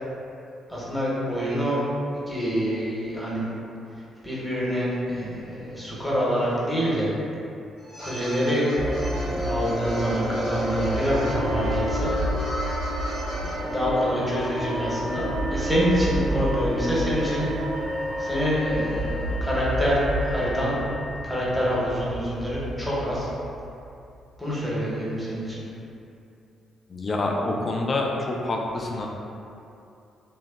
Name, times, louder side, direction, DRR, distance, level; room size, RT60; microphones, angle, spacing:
voice 1, 0.7-1.8 2.3-3.5 4.2-7.1 8.0-8.7 9.1-12.1 13.4-17.5 18.2-20.8 21.2-23.3 24.4-25.7, equal, 10° left, -7 dB, 0.8 m, -26 dB
sound 1, 7.8-13.5, equal, 75° left, 0.9 m, -36 dB
sound 2, 8.8-24.0, equal, 65° right, 0.4 m, -29 dB
voice 2, 26.9-29.1, left 2 dB, 40° left, 0 dB, 0.3 m, -27 dB
2.6 x 2.1 x 2.3 m, 2.7 s
hypercardioid pair, 40°, 0 cm